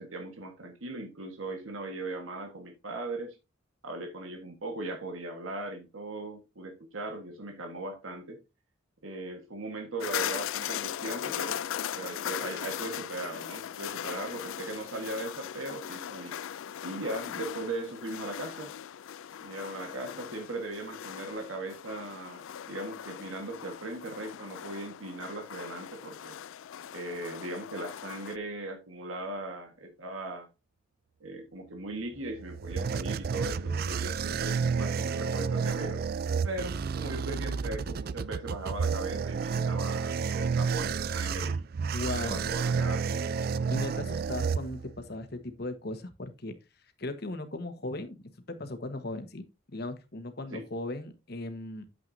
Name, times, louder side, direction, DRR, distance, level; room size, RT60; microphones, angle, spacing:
voice 1, 0.0-3.4 3.8-8.4 9.0-11.7 11.9-16.4 16.8-18.7 19.4-26.4 26.9-30.5 31.2-36.0 36.4-41.7 42.2-43.3 50.5-50.6, right 2 dB, 90° right, 1.5 m, -38 dB
sound 1, 10.0-28.4, left 10 dB, 80° left, 0.4 m, -39 dB
sound 2, 32.2-45.1, right 5 dB, 50° right, 0.4 m, -31 dB
voice 2, 41.9-42.5 43.7-46.5 47.0-48.2 48.5-49.4 49.7-51.8, left 2 dB, 50° left, 1.3 m, -37 dB
9.1 x 7.7 x 2.7 m
head